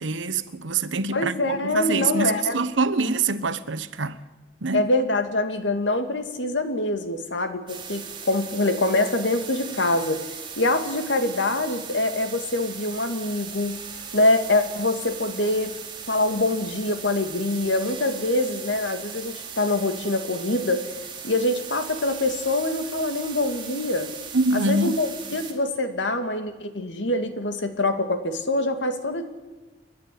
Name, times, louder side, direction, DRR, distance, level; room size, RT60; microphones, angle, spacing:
voice 1, 0.0-4.2 4.6-4.9 24.3-25.0, right 3 dB, 85° right, 1.1 m, -25 dB
voice 2, 1.1-2.6 4.7-10.2 10.6-13.8 14.1-15.8 16.1-20.9 21.2-24.1 24.5-29.2, left 2 dB, 75° left, 2.2 m, -24 dB
sound 1, 7.7-25.5, right 7 dB, 25° right, 2.7 m, -38 dB
29.5 x 11.0 x 8.5 m
head